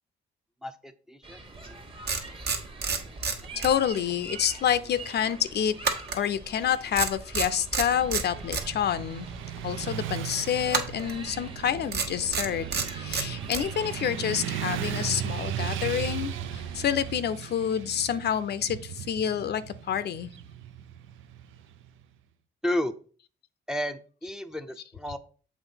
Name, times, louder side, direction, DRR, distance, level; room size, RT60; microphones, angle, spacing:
voice 1, 0.6-1.4 13.6-13.7 22.6-22.9 23.7-25.2, left 1 dB, 5° right, 7 dB, 0.6 m, -32 dB
sound 1, 1.2-17.2, right 2 dB, 25° right, 1.3 m, -45 dB
sound 2, 1.6-1.7 2.1-4.1 4.4-4.6 5.8-6.7 6.9-8.7 10.7-11.2 11.9-13.7, right 5 dB, 55° right, 1.3 m, -29 dB
voice 2, 3.6-5.7 6.1-9.3 9.6-20.3, left 9 dB, 55° left, 13 dB, 0.5 m, -28 dB
Motorcycle / Traffic noise roadway noise, 7.9-22.0, right 10 dB, 85° right, 0.5 m, -37 dB
7.2 x 3.1 x 5.6 m, 0.41 s
cardioid pair, 90°, 20 cm